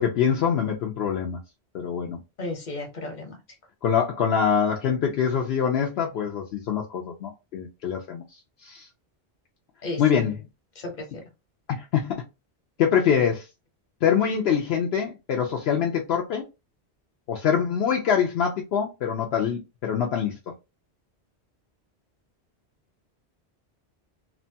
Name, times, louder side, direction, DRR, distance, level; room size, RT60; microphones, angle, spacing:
voice 1, 0.0-1.4 1.7-2.2 3.8-8.2 8.6-8.9 10.0-10.4 11.8-12.1 12.8-13.5 14.0-16.4 17.3-20.3, left 7 dB, 75° left, 0.8 m, -24 dB
voice 2, 2.4-3.4 9.8-10.0 10.8-11.2, left 2 dB, 45° left, 1.0 m, -33 dB
2.9 x 2.2 x 2.6 m
omnidirectional pair, 1.1 m